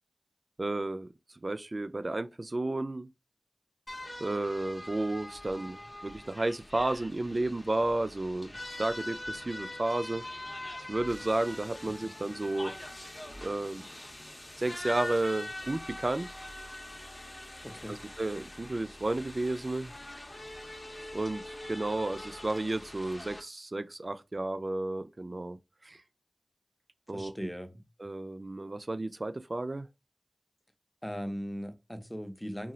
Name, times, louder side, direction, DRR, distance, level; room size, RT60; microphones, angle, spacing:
voice 1, 0.6-1.1 1.4-3.1 4.2-10.2 10.9-12.7 13.4-13.9 14.6-16.3 17.9-19.9 21.1-26.0 27.1-27.5 28.0-29.9, right 2 dB, 50° right, 0.3 m, -32 dB
sound 1, 3.9-23.4, left 1 dB, 40° left, 0.7 m, -43 dB
voice 2, 17.6-18.0 27.1-27.8 31.0-32.7, equal, 5° left, 0.6 m, -39 dB
2.3 x 2.0 x 3.8 m
wide cardioid pair, 40°, 0 cm